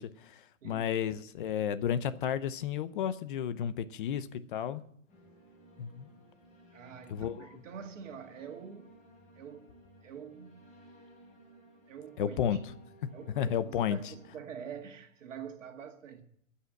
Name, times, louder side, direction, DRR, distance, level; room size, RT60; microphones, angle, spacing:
voice 1, 0.0-4.8 5.8-6.1 7.1-7.5 12.2-12.6 13.4-14.0, left 9 dB, 40° left, 0.7 m, -32 dB
sound 1, 5.1-14.4, equal, 20° left, 3.0 m, -58 dB
voice 2, 6.7-8.9 9.4-9.7 10.0-10.7 11.9-12.6 13.1-16.2, right 7 dB, 70° right, 2.0 m, -46 dB
15.5 x 5.7 x 9.0 m
hypercardioid pair, 160°, 39 cm